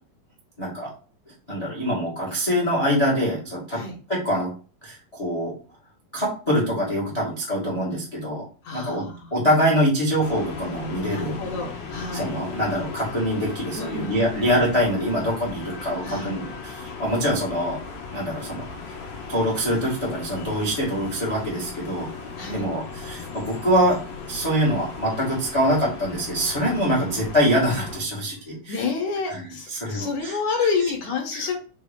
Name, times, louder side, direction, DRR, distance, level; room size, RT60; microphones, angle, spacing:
voice 1, 0.6-0.9 1.5-3.8 4.1-4.5 4.8-5.5 6.1-8.4 8.7-9.0 9.3-11.3 12.1-17.8 18.1-18.6 19.3-22.1 22.5-28.7 29.3-29.4 29.7-30.4 31.3-31.5, equal, 40° left, -5 dB, 0.4 m, -24 dB
voice 2, 8.6-9.5 11.0-12.3 13.8-14.5 16.0-16.4 22.4-22.7 26.7-27.2 28.7-31.6, left 4 dB, 70° left, 2 dB, 1.9 m, -29 dB
sound 1, 10.2-28.0, left 4 dB, 85° left, 1.4 m, -37 dB
5.6 x 2.7 x 3.5 m, 0.38 s
omnidirectional pair, 4.3 m